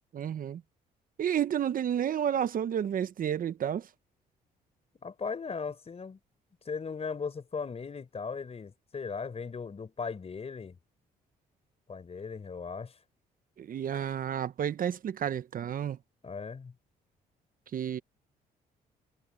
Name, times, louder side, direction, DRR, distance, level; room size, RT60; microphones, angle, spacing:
voice 1, 0.1-0.6 1.2-3.9 13.6-16.0 17.7-18.0, right 9 dB, 55° right, 0.9 m, -31 dB
voice 2, 5.0-6.2 6.6-10.8 11.9-13.0 16.2-16.7, left 5 dB, 35° left, 4.6 m, -38 dB
supercardioid pair, 75°, 17 cm